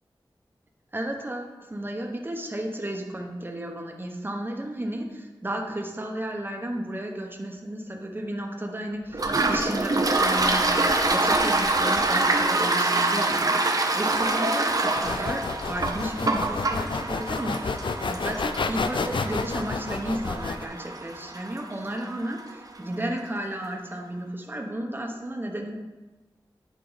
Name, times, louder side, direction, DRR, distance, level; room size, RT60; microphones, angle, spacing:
voice 1, 0.9-25.7, right 1 dB, 25° right, 2 dB, 1.2 m, -33 dB
Toilet flush, 9.1-22.5, right 2 dB, 45° right, 0.8 m, -26 dB
sound 1, 15.0-20.6, left 4 dB, 75° left, 0.5 m, -30 dB
11.0 x 4.9 x 4.0 m, 1.1 s
wide cardioid pair, 90°, 8 cm